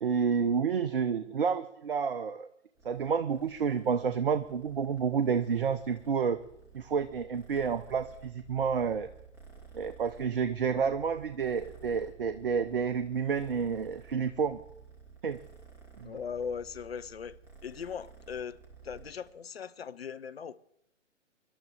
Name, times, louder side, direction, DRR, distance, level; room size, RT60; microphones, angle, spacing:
voice 1, 0.0-2.5 2.8-6.4 6.7-9.1 9.7-14.6 15.2-15.4 16.0-16.2, right 6 dB, 45° right, 0.8 m, -30 dB
Purr, 2.8-19.3, right 5 dB, 5° right, 2.1 m, -54 dB
voice 2, 16.0-17.4 17.6-18.6 18.8-20.6, left 6 dB, 55° left, 0.8 m, -39 dB
24.5 x 12.0 x 3.5 m
figure-of-eight pair, 135°, 37 cm